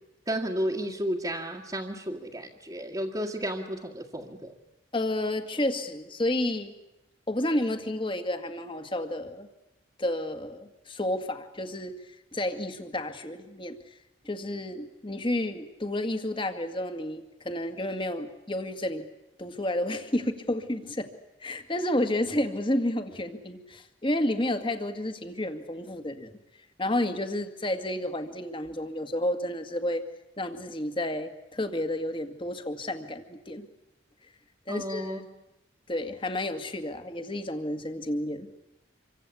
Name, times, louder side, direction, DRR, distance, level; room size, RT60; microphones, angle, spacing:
voice 1, 0.3-4.5 34.7-35.2, equal, 20° right, -2 dB, 1.9 m, -32 dB
voice 2, 4.9-6.7 7.3-9.5 10.0-11.9 12.3-13.8 14.2-19.1 19.4-21.1 21.4-26.3 26.8-30.0 30.4-33.7 34.7-35.2 35.9-38.5, left 1 dB, 25° left, 8 dB, 2.0 m, -31 dB
27.0 x 24.5 x 8.5 m, 0.94 s
head